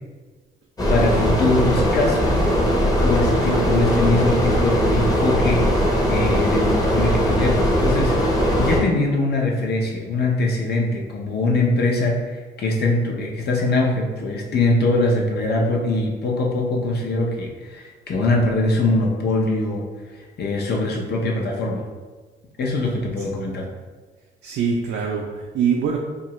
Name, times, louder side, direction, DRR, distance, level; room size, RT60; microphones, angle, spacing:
sound 1, 0.8-8.8, equal, 20° left, 0.8 m, -19 dB
voice 1, 0.9-2.4 3.0-5.7 6.1-8.1 8.6-19.9 20.4-21.8 22.6-23.7, left 2 dB, 55° left, 0 dB, 0.7 m, -22 dB
voice 2, 3.4-3.8 24.4-26.0, right 6 dB, 65° right, 0 dB, 0.4 m, -24 dB
2.7 x 2.4 x 3.0 m, 1.4 s
cardioid pair, 90°, 20 cm